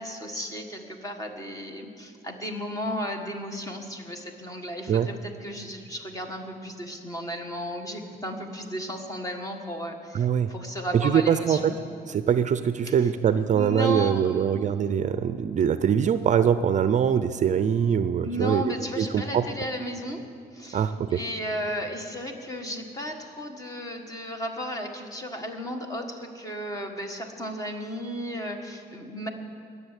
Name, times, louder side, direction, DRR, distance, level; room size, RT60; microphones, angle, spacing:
voice 1, 0.0-11.7 12.8-13.1 13.5-14.5 14.8-14.9 18.2-20.2 20.5-29.3, equal, 20° left, 4 dB, 1.6 m, -34 dB
voice 2, 10.1-10.5 10.9-11.7 12.1-18.6 19.0-19.4 20.7-21.2, right 8 dB, 45° right, 11 dB, 0.5 m, -23 dB
21.5 x 7.1 x 8.2 m, 2.5 s
cardioid pair, 135°, 18 cm